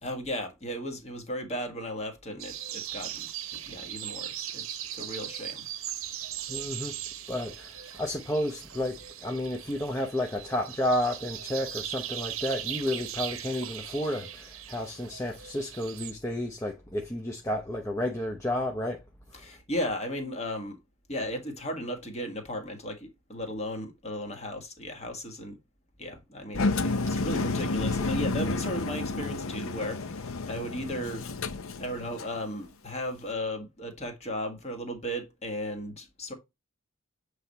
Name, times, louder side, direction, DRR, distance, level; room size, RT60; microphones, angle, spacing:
voice 1, 0.0-4.6 4.9-5.6 19.3-20.8 21.1-25.6 26.0-31.4 31.8-36.3, equal, 30° left, 1.5 m, -35 dB
sound 1, 2.4-16.1, right 11 dB, 70° right, 0.7 m, -39 dB
voice 2, 6.5-6.9 7.3-19.0 19.3-19.4 27.1-27.2, left 1 dB, 15° left, 0.6 m, -31 dB
Engine, 26.5-32.4, left 3 dB, 75° left, 0.6 m, -30 dB
7.6 x 3.3 x 4.1 m
head